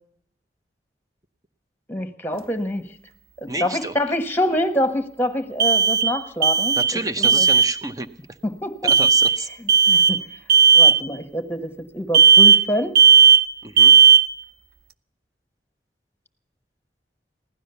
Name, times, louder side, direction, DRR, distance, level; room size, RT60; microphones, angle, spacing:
voice 1, 1.9-2.8 3.4-6.8 7.2-7.5 8.4-8.9 9.9-10.2 10.7-12.9, left 1 dB, 10° left, 10 dB, 1.3 m, -25 dB
sound 1, 2.3-2.4 5.6-6.2 6.4-7.0 7.2-7.7 8.9-9.4 9.7-10.2 10.5-11.0 12.1-12.7 12.9-13.5 13.8-14.3, right 6 dB, 55° right, 0.5 m, -14 dB
voice 2, 3.5-4.0 6.8-8.1 8.8-9.5 13.6-13.9, right 2 dB, 20° right, 10 dB, 0.7 m, -30 dB
16.0 x 12.5 x 6.8 m, 0.70 s
head